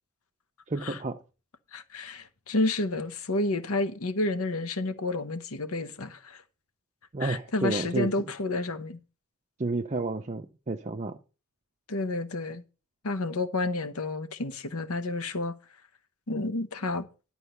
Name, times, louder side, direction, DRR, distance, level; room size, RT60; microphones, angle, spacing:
voice 1, 0.7-1.2 7.1-8.1 9.6-11.2, right 3 dB, 30° right, 0.6 m, -31 dB
voice 2, 1.7-6.4 7.2-9.0 11.9-12.6 13.0-15.5 16.3-17.1, left 2 dB, 70° left, 1.0 m, -30 dB
11.5 x 4.6 x 6.7 m
head